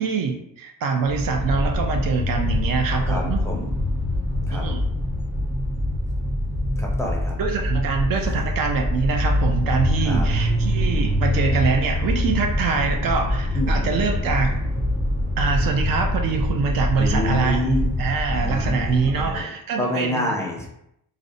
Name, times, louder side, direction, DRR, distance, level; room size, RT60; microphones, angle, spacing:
voice 1, 0.0-3.4 4.5-4.8 7.4-14.6 15.4-20.4, right 5 dB, 65° right, 3 dB, 0.5 m, -24 dB
sound 1, 1.0-19.4, left 1 dB, 20° right, 0.9 m, -24 dB
voice 2, 3.0-3.7 4.5-4.6 6.8-7.4 8.2-8.4 10.0-10.3 13.5-14.0 17.0-17.9 18.3-19.5 19.8-20.7, left 1 dB, 5° left, -2 dB, 0.4 m, -28 dB
2.5 x 2.0 x 2.5 m, 0.79 s
cardioid pair, 95°, 37 cm